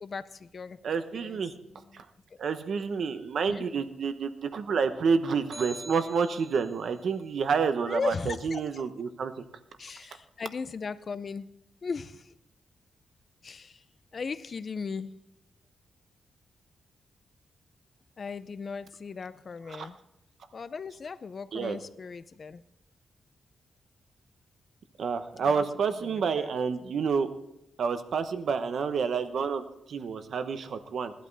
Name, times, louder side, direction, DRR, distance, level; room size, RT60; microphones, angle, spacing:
voice 1, 0.0-0.8 1.1-1.4 1.7-2.0 2.3-2.4 3.4-3.7 7.9-8.9 9.8-11.5 11.8-12.3 13.4-13.8 14.1-15.1 18.2-20.0 20.5-22.6 25.4-25.6 26.0-26.5, left 5 dB, 40° left, 0.5 m, -38 dB
voice 2, 0.8-1.5 1.9-2.0 2.4-9.3 19.7-19.9 21.5-21.8 25.0-27.3 27.8-31.1, right 5 dB, 60° right, 1.0 m, -29 dB
sound 1, 5.5-6.9, right 2 dB, 35° right, 1.7 m, -44 dB
18.0 x 11.5 x 4.1 m
wide cardioid pair, 165°, 0 cm